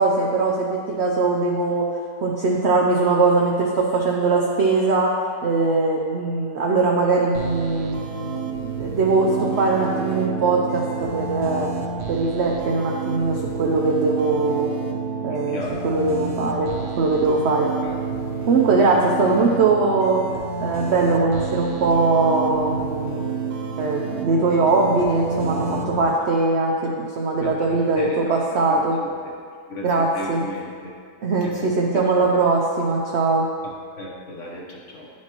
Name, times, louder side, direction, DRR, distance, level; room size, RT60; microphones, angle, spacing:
voice 1, 0.0-1.9 2.2-5.1 5.4-11.7 12.1-14.7 15.2-16.7 17.0-17.7 18.5-20.2 20.6-23.2 23.8-29.0 29.8-30.4 31.2-33.5, right 3 dB, 80° right, -1 dB, 0.5 m, -21 dB
sound 1, 7.3-26.0, right 5 dB, 65° right, 1.0 m, -29 dB
voice 2, 15.3-15.9 17.8-18.0 27.3-29.1 29.7-30.9 31.4-32.4 33.6-35.1, left 1 dB, 55° left, -3 dB, 1.1 m, -36 dB
10.5 x 4.4 x 2.9 m, 2.2 s
omnidirectional pair, 1.8 m